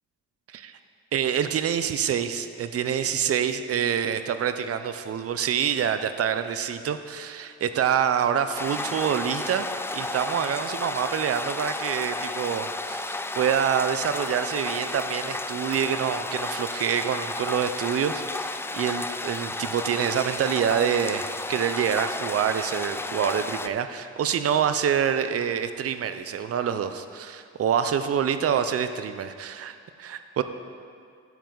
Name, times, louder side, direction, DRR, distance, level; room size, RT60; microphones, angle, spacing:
voice 1, 0.5-0.8 1.1-30.4, right 8 dB, 50° right, 10 dB, 0.7 m, -26 dB
sound 1, 8.6-23.7, left 2 dB, 10° left, 0.3 m, -32 dB
10.0 x 9.5 x 4.0 m, 2.3 s
cardioid pair, 90°, 30 cm